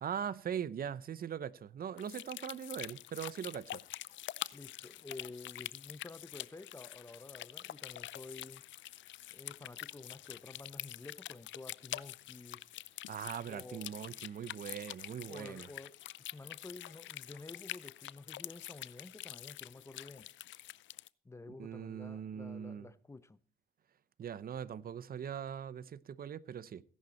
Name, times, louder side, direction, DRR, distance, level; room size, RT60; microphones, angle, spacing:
voice 1, 0.0-3.8 13.1-15.7 21.6-22.9 24.2-26.8, right 8 dB, 50° right, 0.7 m, -41 dB
sound 1, 2.0-21.1, left 14 dB, 70° left, 0.5 m, -46 dB
voice 2, 4.5-8.6 9.3-12.7 13.5-13.9 15.3-20.3 21.2-23.4, left 3 dB, 15° left, 0.8 m, -51 dB
16.5 x 11.0 x 4.2 m
cardioid pair, 90°, 20 cm